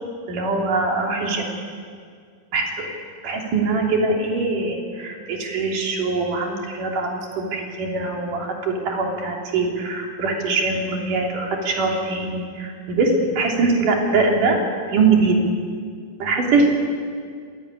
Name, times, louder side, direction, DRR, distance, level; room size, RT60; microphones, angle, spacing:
voice 1, 0.3-1.5 2.5-2.9 3.2-7.1 7.4-14.6 14.9-15.4 16.2-16.7, right 3 dB, 80° right, 1 dB, 4.7 m, -22 dB
26.0 x 17.0 x 9.8 m, 2.1 s
omnidirectional pair, 3.6 m